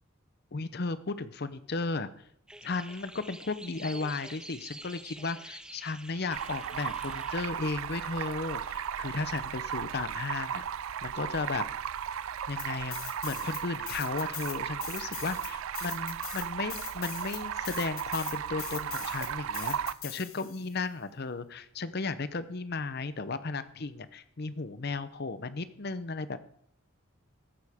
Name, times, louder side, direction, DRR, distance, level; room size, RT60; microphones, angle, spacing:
voice 1, 0.5-2.1 2.6-10.6 11.0-11.6 12.5-19.8 20.0-26.4, left 3 dB, 50° left, 13 dB, 0.8 m, -35 dB
sound 1, 2.5-7.5, right 1 dB, 5° right, 0.5 m, -47 dB
Stream, 6.3-19.9, right 8 dB, 75° right, 0.4 m, -36 dB
sound 2, 12.6-13.6 13.9-20.7, left 12 dB, 75° left, 1.4 m, -41 dB
14.5 x 11.5 x 3.6 m, 0.69 s
head